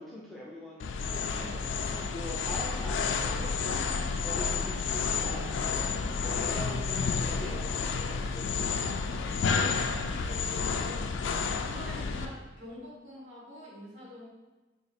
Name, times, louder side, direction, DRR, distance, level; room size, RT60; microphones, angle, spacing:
voice 1, 0.0-1.6 2.1-5.6 6.2-9.1 12.3-12.4, equal, ahead, -5 dB, 0.4 m, -43 dB
sound 1, 0.8-12.2, left 5 dB, 85° left, 0.3 m, -30 dB
voice 2, 5.6-6.3 8.8-11.4 11.6-14.3, left 1 dB, 85° right, -6 dB, 1.4 m, -47 dB
3.8 x 2.3 x 4.2 m, 1.2 s
head